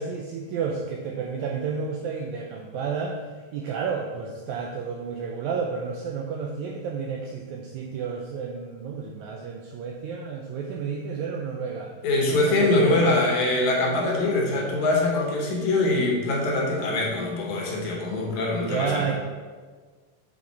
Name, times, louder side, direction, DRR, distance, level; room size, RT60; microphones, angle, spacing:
voice 1, 0.0-11.9 12.5-13.0 18.6-19.1, right 5 dB, 85° right, 1 dB, 1.7 m, -31 dB
voice 2, 12.0-19.1, left 2 dB, 70° left, -2 dB, 2.3 m, -23 dB
7.4 x 4.1 x 4.1 m, 1.5 s
omnidirectional pair, 3.8 m